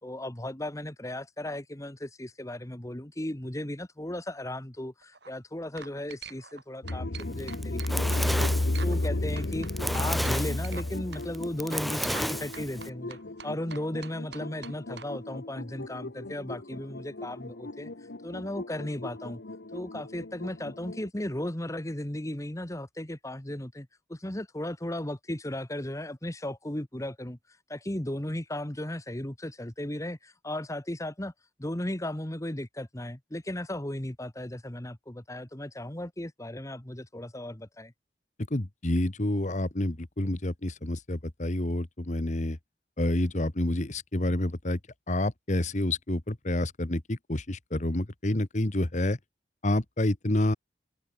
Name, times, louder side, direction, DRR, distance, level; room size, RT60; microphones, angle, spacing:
voice 1, 0.0-9.7 9.9-17.9 18.2-19.4 19.7-27.4 27.7-31.3 31.6-37.9, left 1 dB, 20° left, 1.5 m, -36 dB
sound 1, 5.0-5.3 5.8-6.6 6.9-9.1 9.4-10.9 11.1-11.2 11.7-12.3 12.5-15.1, right 6 dB, 75° right, 7.2 m, -44 dB
We are not alone here (music), 6.8-21.1, left 2 dB, 80° left, 1.3 m, -34 dB
Fire, 7.4-12.9, equal, ahead, 1.1 m, -32 dB
voice 2, 38.5-42.6 43.0-44.8 45.1-49.2 49.6-50.5, left 1 dB, 45° left, 1.4 m, -28 dB
head